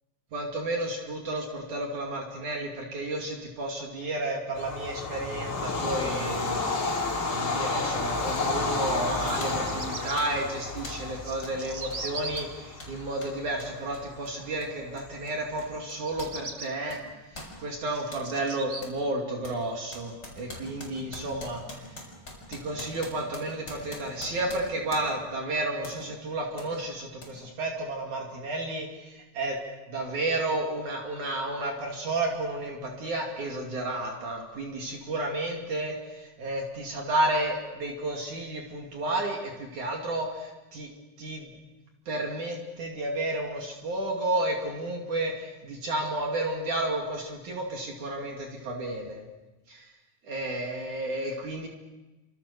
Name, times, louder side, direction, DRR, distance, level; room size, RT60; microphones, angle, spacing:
voice 1, 0.3-6.8 7.3-17.0 17.3-21.8 22.5-29.6 29.9-40.9 41.2-41.5 42.1-49.2 49.7-49.9 50.2-51.7, right 2 dB, 60° right, 0 dB, 4.0 m, -32 dB
Bird vocalization bird call bird song / Train, 4.6-15.8, left 3 dB, 45° left, 4.1 m, -32 dB
sound 1, 9.4-9.7 10.2-10.4 10.8-11.1 11.4-11.6 11.9-16.4 16.6-18.3 18.8-19.0 19.4-25.3 25.8-26.0 26.6-26.7 27.2-27.3, left 1 dB, 30° left, 7.2 m, -44 dB
Bird vocalization bird call bird song, 9.5-10.2 10.9-12.4 15.9-16.7 17.4-18.8, right 3 dB, 30° right, 1.8 m, -39 dB
28.5 x 27.0 x 6.8 m, 1.1 s
omnidirectional pair, 4.0 m